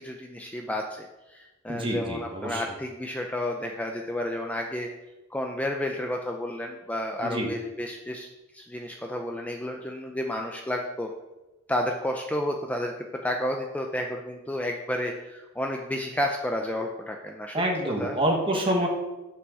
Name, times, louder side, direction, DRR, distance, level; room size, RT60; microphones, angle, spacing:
voice 1, 0.0-4.9 5.3-8.3 8.5-11.1 11.7-18.2 18.5-18.6, left 1 dB, 5° left, 2 dB, 0.5 m, -31 dB
voice 2, 1.7-2.6 7.2-7.5 17.5-18.9, right 1 dB, 25° right, 1 dB, 1.4 m, -27 dB
7.9 x 6.2 x 6.3 m, 1.1 s
head